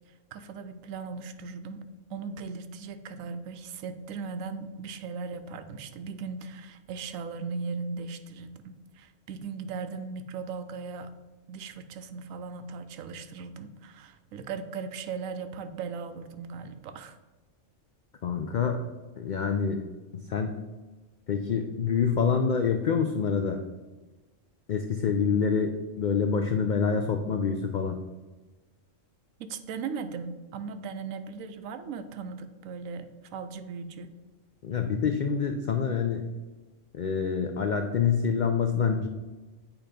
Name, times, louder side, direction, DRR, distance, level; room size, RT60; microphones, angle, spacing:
voice 1, 0.3-1.8 2.1-11.1 11.5-17.2 29.4-34.2, right 5 dB, 90° right, 9 dB, 1.0 m, -38 dB
voice 2, 18.2-18.8 19.2-19.8 20.3-20.5 21.3-23.6 24.7-28.0 34.6-36.2 36.9-39.1, left 6 dB, 75° left, 5 dB, 0.4 m, -26 dB
8.8 x 2.9 x 5.0 m, 1.2 s
omnidirectional pair, 1.4 m